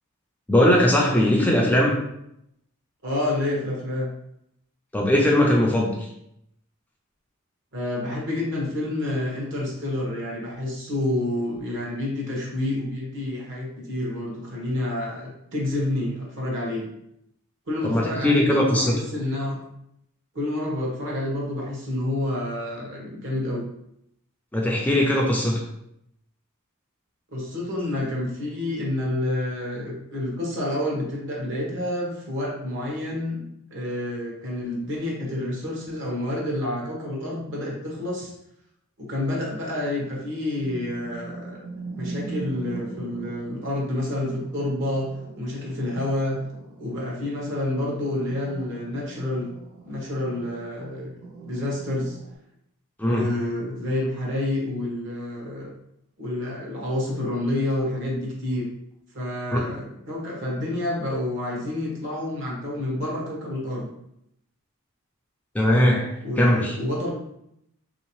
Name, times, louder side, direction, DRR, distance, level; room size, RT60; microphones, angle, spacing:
voice 1, 0.5-2.0 4.9-6.1 17.8-18.9 24.5-25.6 53.0-53.3 59.5-59.6 65.5-66.8, left 1 dB, 5° left, -2 dB, 0.4 m, -20 dB
voice 2, 3.0-4.1 7.7-16.9 17.7-19.6 20.3-23.6 27.3-33.4 33.7-38.3 39.0-41.6 42.0-45.1 45.4-46.4 46.8-49.5 49.8-51.1 51.5-52.2 53.0-55.7 56.2-58.7 59.1-63.9 66.2-67.1, left 1 dB, 60° right, -3 dB, 1.1 m, -28 dB
sound 1, 40.6-52.3, right 3 dB, 30° right, 0.7 m, -41 dB
3.5 x 2.8 x 3.0 m, 0.78 s
head